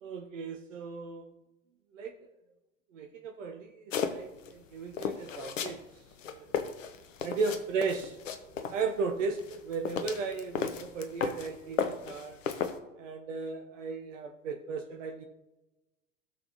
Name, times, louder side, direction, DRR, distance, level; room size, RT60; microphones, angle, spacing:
voice 1, 0.0-1.2 1.9-2.3 2.9-5.8 6.3-6.6 7.2-8.2 8.6-12.4 13.0-15.2, right 4 dB, 70° right, 4 dB, 1.0 m, -35 dB
sound 1, 3.9-4.5 5.0-5.8 6.1-8.8 9.4-11.5 11.8-12.8, left 7 dB, 70° left, 1.0 m, -34 dB
17.0 x 6.4 x 3.0 m, 1.1 s
figure-of-eight pair, 80°, 40 cm